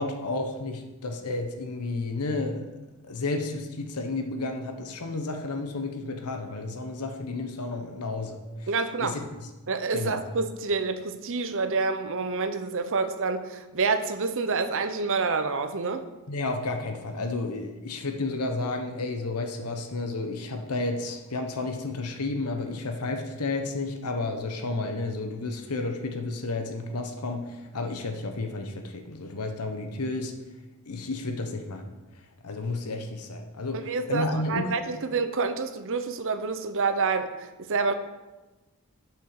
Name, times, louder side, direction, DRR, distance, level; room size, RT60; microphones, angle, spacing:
voice 1, 0.0-2.7 3.0-8.7 9.0-9.2 9.9-10.2 16.3-30.3 30.9-31.9 32.4-34.7, left 2 dB, 85° left, 5 dB, 0.9 m, -32 dB
voice 2, 8.7-9.2 9.7-16.1 33.8-37.9, right 4 dB, 60° right, 9 dB, 0.8 m, -28 dB
8.1 x 6.1 x 6.6 m, 1.1 s
head